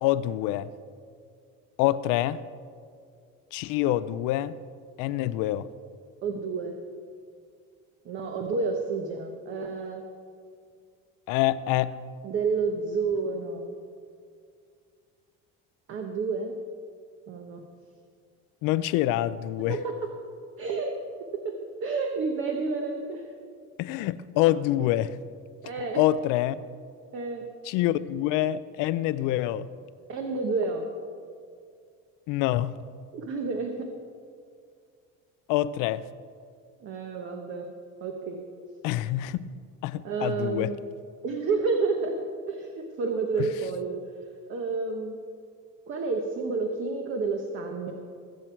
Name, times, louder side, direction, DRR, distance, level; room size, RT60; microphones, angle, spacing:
voice 1, 0.0-0.7 1.8-2.4 3.5-4.5 5.0-5.7 11.3-11.9 18.6-19.8 23.8-25.2 26.0-26.6 27.7-29.7 32.3-32.8 35.5-36.0 38.8-39.5 39.8-40.7 43.4-43.5, left 14 dB, 75° left, 0.6 m, -26 dB
voice 2, 6.2-6.8 8.0-10.0 12.2-13.8 15.9-16.5 17.3-17.6 19.7-19.9 20.6-21.0 21.3-23.3 25.6-26.0 27.1-27.5 30.1-30.9 33.1-33.9 36.8-37.7 38.0-38.4 40.0-40.8 41.2-42.2 42.5-44.0 44.5-45.2 45.9-47.9, right 4 dB, 40° right, 1.0 m, -30 dB
21.5 x 7.7 x 4.6 m
cardioid pair, 165°, 32 cm